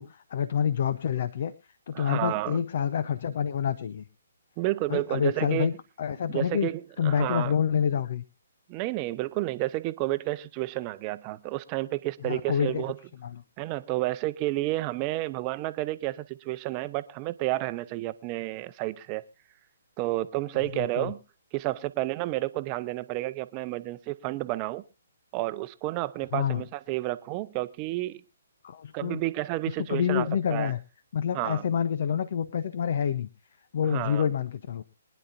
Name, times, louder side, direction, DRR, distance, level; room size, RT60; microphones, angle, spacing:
voice 1, 0.0-1.5 1.9-4.0 4.9-5.7 6.0-6.7 7.0-8.2 12.2-12.8 13.2-13.4 20.7-21.1 26.3-26.6 28.6-29.2 29.7-30.8 31.1-33.3 33.7-34.8, left 8 dB, 50° left, 0.8 m, -27 dB
voice 2, 1.9-2.6 4.6-5.7 6.3-7.6 8.7-13.0 13.6-19.2 20.0-21.2 21.5-24.8 25.3-28.2 28.9-30.7 31.3-31.6 33.9-34.3, right 18 dB, 30° right, 0.8 m, -31 dB
23.5 x 10.5 x 2.6 m
figure-of-eight pair, 135°, 0 cm